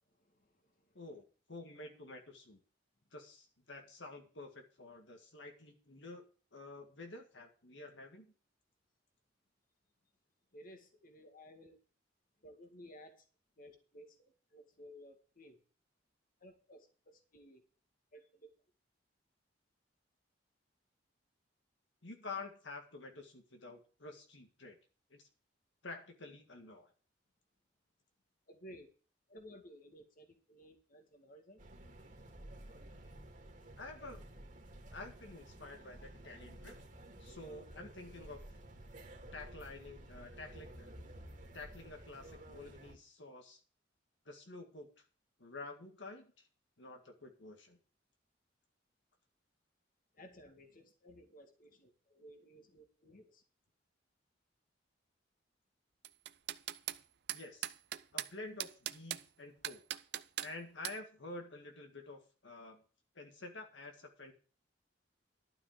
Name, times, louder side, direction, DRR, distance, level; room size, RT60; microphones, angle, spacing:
voice 1, 0.1-1.0 10.5-11.8 12.4-13.2 13.6-15.6 16.4-17.6 18.1-18.5 28.5-28.9 29.3-31.6 37.3-37.4 50.1-53.4, equal, 50° left, 4 dB, 2.1 m, -57 dB
voice 2, 0.9-2.6 3.1-6.2 6.5-8.3 22.0-24.8 25.1-25.3 25.8-26.9 33.8-34.2 34.9-36.7 37.2-38.4 39.3-40.9 41.5-43.6 44.3-44.9 45.4-46.5 46.8-47.8 57.3-57.7 58.1-59.8 60.4-62.8 63.2-64.3, left 3 dB, 75° left, 3 dB, 2.0 m, -49 dB
sound 1, 31.6-43.0, right 1 dB, 45° right, 2.2 m, -53 dB
sound 2, 56.0-57.0 57.3-58.3 58.6-59.2 59.6-60.5 60.8-61.0, right 12 dB, 60° right, 0.6 m, -39 dB
12.0 x 6.0 x 7.4 m, 0.40 s
head